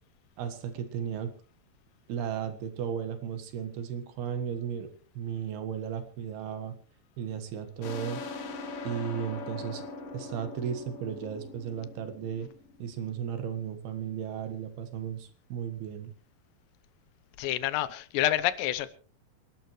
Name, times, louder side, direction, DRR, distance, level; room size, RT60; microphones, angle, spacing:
voice 1, 0.4-1.3 2.1-4.9 5.1-6.7 7.2-8.2 8.8-9.8 10.1-12.5 12.8-16.1, right 8 dB, 70° right, 3.4 m, -35 dB
sound 1, 7.8-13.1, left 3 dB, 60° left, 3.5 m, -41 dB
voice 2, 17.4-18.9, left 14 dB, 85° left, 3.1 m, -28 dB
27.5 x 11.5 x 3.1 m
omnidirectional pair, 4.8 m